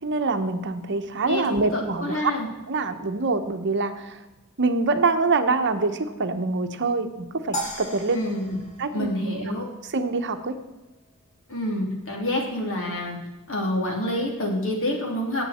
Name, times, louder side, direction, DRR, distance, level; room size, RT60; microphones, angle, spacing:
voice 1, 0.0-2.3 2.7-4.2 4.6-8.2 8.8-9.1 9.3-9.4 9.9-10.6, right 3 dB, 55° right, 8 dB, 1.0 m, -25 dB
voice 2, 1.3-2.5 8.1-8.6 8.9-9.7 11.5-13.2 13.5-15.4, left 1 dB, 65° left, 0 dB, 3.2 m, -27 dB
sound 1, 7.5-9.9, right 1 dB, 35° left, 2.5 m, -36 dB
18.5 x 8.1 x 4.4 m, 1.1 s
head